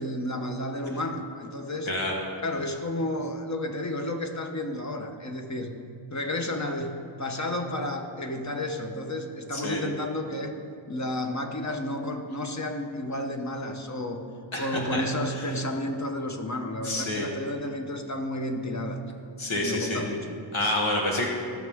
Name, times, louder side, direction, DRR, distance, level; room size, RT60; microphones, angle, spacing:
voice 1, 0.0-1.9 2.4-5.7 6.1-10.5 10.9-14.2 14.6-19.0 19.5-20.4, left 1 dB, 35° left, 4 dB, 1.1 m, -31 dB
voice 2, 9.5-9.8 14.5-15.0 15.4-15.5 16.8-17.3 19.4-20.0 20.5-21.2, left 1 dB, 75° left, -1 dB, 1.6 m, -28 dB
16.0 x 6.3 x 3.6 m, 2.4 s
wide cardioid pair, 65°, 48 cm